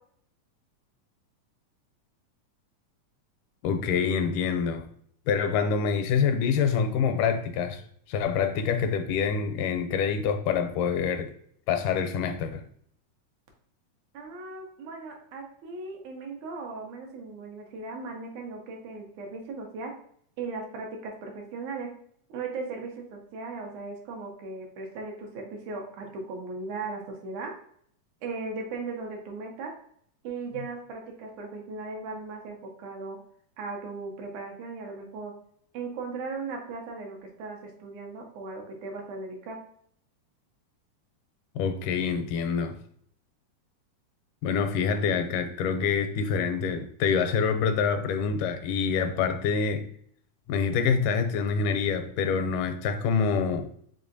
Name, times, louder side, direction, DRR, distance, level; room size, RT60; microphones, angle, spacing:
voice 1, 3.6-4.9 5.3-7.8 8.1-11.3 11.7-12.6 41.6-42.8 44.4-49.8 50.5-53.7, left 6 dB, 85° left, 7 dB, 2.1 m, -26 dB
voice 2, 14.1-19.9 20.4-21.9 22.3-27.5 28.2-29.7 30.2-33.2 33.6-35.3 35.7-39.6, right 3 dB, 75° right, 1 dB, 2.1 m, -37 dB
5.4 x 3.7 x 2.6 m, 0.64 s
omnidirectional pair, 3.7 m